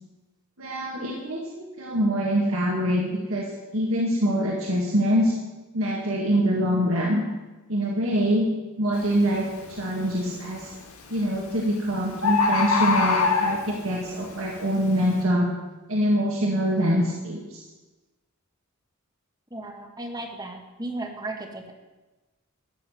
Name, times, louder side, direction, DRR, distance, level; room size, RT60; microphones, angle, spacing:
voice 1, 0.6-3.5 3.7-5.3 5.7-7.2 7.7-8.5 8.8-10.7 11.1-15.5 15.9-17.6, equal, 70° right, -2 dB, 2.1 m, -24 dB
Bird, 8.9-9.2 9.7-10.2 11.2-11.3 11.6-11.7 11.9-12.0 12.2-13.9 14.5-14.6, left 4 dB, 80° left, 2.5 m, -22 dB
voice 2, 19.5-21.7, right 2 dB, 20° right, 3 dB, 1.5 m, -35 dB
14.5 x 6.9 x 9.4 m, 1.2 s
head